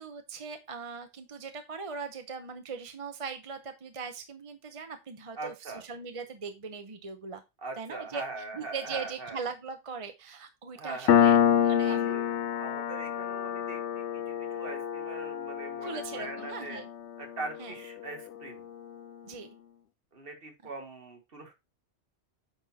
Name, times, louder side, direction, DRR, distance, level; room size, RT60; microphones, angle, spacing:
voice 1, 0.0-7.4 7.8-8.2 8.5-11.4 11.6-12.1 15.8-16.8 17.6-17.7 19.2-19.5, right 5 dB, 35° right, 7 dB, 0.8 m, -40 dB
voice 2, 5.4-5.8 7.6-9.4 10.8-11.3 11.8-16.8 17.2-18.7 20.1-21.5, right 3 dB, 55° right, 4 dB, 1.8 m, -41 dB
Piano, 11.1-18.3, left 9 dB, 80° left, 0.9 m, -27 dB
8.9 x 4.3 x 4.1 m, 0.24 s
omnidirectional pair, 1.2 m